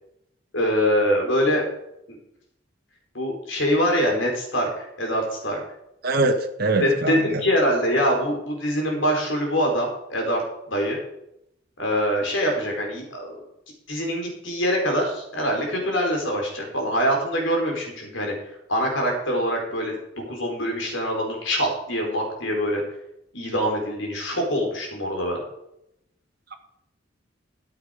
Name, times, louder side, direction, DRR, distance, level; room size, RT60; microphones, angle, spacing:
voice 1, 0.5-1.6 2.1-2.2 3.1-5.6 6.8-10.4 10.7-11.0 11.8-13.3 13.9-18.3 18.7-19.9 20.3-22.8 23.3-25.4, equal, 75° left, 1 dB, 4.3 m, -24 dB
voice 2, 6.0-7.4, right 2 dB, 55° right, 4 dB, 1.4 m, -23 dB
13.5 x 8.5 x 5.1 m, 0.80 s
head